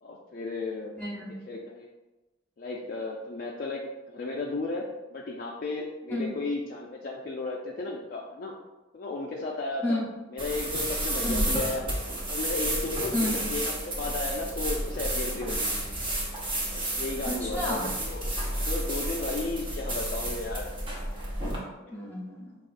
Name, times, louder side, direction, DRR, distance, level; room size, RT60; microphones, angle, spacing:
voice 1, 0.0-0.9 1.5-1.9 2.6-8.6 8.9-10.0 10.3-11.8 12.3-13.2 13.5-15.7 16.7-18.2 18.6-20.7, left 3 dB, 50° left, -2 dB, 0.3 m, -34 dB
voice 2, 1.0-1.3 6.1-6.3 9.8-10.1 11.2-11.5 13.1-13.4 17.2-17.9 21.9-22.6, left 1 dB, 10° left, -5 dB, 0.9 m, -31 dB
sound 1, 10.4-21.6, right 1 dB, 25° right, 0.7 m, -31 dB
4.9 x 2.3 x 2.5 m, 1.1 s
head